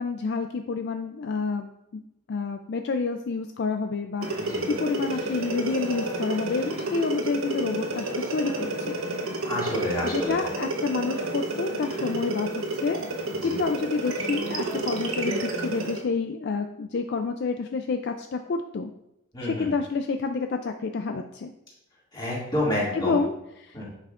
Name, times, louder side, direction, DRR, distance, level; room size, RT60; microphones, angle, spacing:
voice 1, 0.0-2.0 2.3-9.0 10.0-12.5 12.7-18.9 19.4-21.5 22.9-23.8, left 4 dB, 50° left, 6 dB, 0.3 m, -29 dB
sound 1, 4.2-16.1, right 2 dB, 75° right, 0.9 m, -30 dB
voice 2, 9.4-10.4 13.4-13.5 19.3-19.7 22.1-23.2 23.7-23.9, left 1 dB, 20° left, -6 dB, 2.2 m, -29 dB
9.9 x 5.7 x 2.4 m, 0.85 s
head